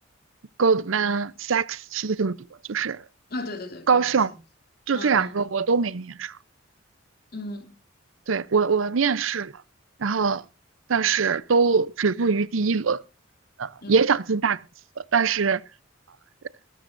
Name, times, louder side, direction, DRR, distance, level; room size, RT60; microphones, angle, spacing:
voice 1, 0.6-2.4 2.7-3.0 3.9-4.3 4.9-6.4 8.3-9.5 10.0-10.4 10.9-13.0 13.6-14.6 15.0-15.6, right 5 dB, 90° right, 0.7 m, -23 dB
voice 2, 3.3-4.4 4.9-5.4 7.3-7.8 13.8-14.0, left 2 dB, 50° left, 2.6 m, -36 dB
21.0 x 12.5 x 2.6 m
head